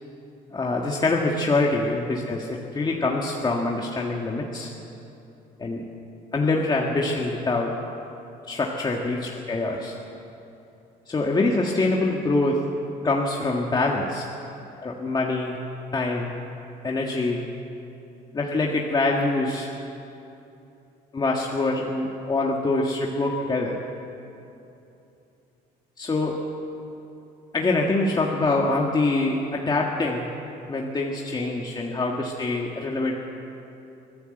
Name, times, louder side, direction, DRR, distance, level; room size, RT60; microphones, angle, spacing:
voice 1, 0.5-4.7 5.6-5.9 6.3-7.7 8.5-10.0 11.1-12.6 13.0-14.3 14.8-15.6 15.9-16.4 16.8-17.4 18.3-19.7 21.1-23.8 26.0-26.4 27.5-30.3 30.7-33.2, left 2 dB, 25° left, -1 dB, 2.0 m, -24 dB
25.0 x 16.0 x 8.0 m, 2.8 s
cardioid pair, 110°, 17 cm